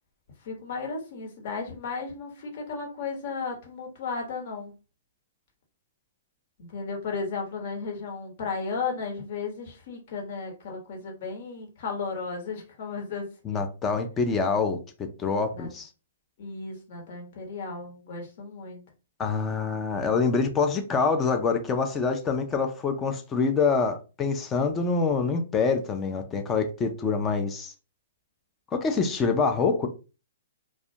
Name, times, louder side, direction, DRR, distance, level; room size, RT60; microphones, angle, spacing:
voice 1, 0.4-4.7 6.6-13.6 15.6-15.7 16.4-18.8, left 4 dB, 55° left, 1.1 m, -34 dB
voice 2, 13.4-14.8 15.2-15.9 19.2-27.7 28.7-29.9, left 4 dB, 20° left, 0.4 m, -25 dB
2.3 x 2.1 x 2.7 m
hypercardioid pair, 135°, 0 cm